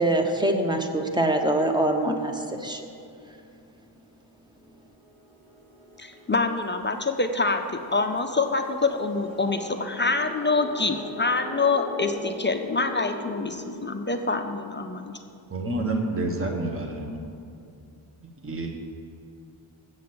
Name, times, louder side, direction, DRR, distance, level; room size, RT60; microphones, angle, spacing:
voice 1, 0.0-2.8, right 1 dB, 10° right, 4 dB, 0.7 m, -24 dB
sound 1, 4.6-15.1, equal, 65° right, 1.8 m, -42 dB
voice 2, 6.0-7.6 7.9-15.1, left 3 dB, 25° left, 6 dB, 0.3 m, -26 dB
voice 3, 15.5-17.2 17.9-18.7, right 2 dB, 25° right, 2 dB, 1.0 m, -29 dB
7.6 x 7.1 x 7.7 m, 2.6 s
wide cardioid pair, 150°, 50 cm